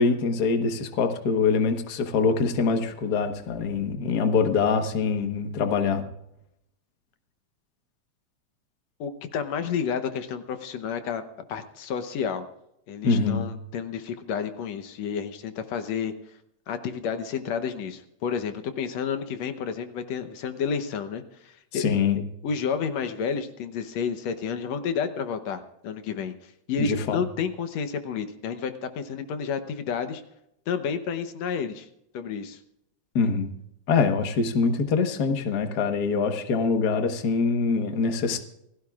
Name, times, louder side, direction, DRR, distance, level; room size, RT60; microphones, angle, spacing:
voice 1, 0.0-6.0 13.0-13.5 21.7-22.2 26.8-27.2 33.1-33.5 33.9-38.4, left 5 dB, 50° left, 6 dB, 1.2 m, -24 dB
voice 2, 9.0-11.2 11.5-12.5 12.9-16.1 16.7-22.0 22.4-26.3 26.7-30.2 30.7-31.9 32.1-32.6, left 6 dB, 70° left, 9 dB, 2.0 m, -30 dB
28.0 x 16.5 x 2.4 m, 0.81 s
omnidirectional pair, 3.5 m